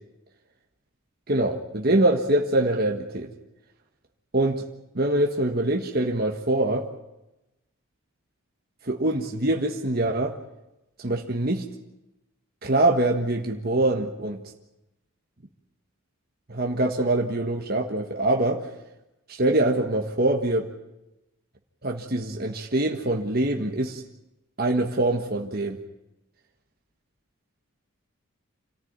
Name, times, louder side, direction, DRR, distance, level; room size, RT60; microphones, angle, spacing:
voice 1, 1.3-3.3 4.3-4.6 4.9-6.9 8.8-10.3 11.0-11.6 12.6-14.4 16.5-18.7 19.3-20.7 21.8-24.0 24.6-25.8, right 1 dB, 45° right, 2 dB, 1.5 m, -24 dB
27.0 x 14.0 x 9.5 m, 0.97 s
head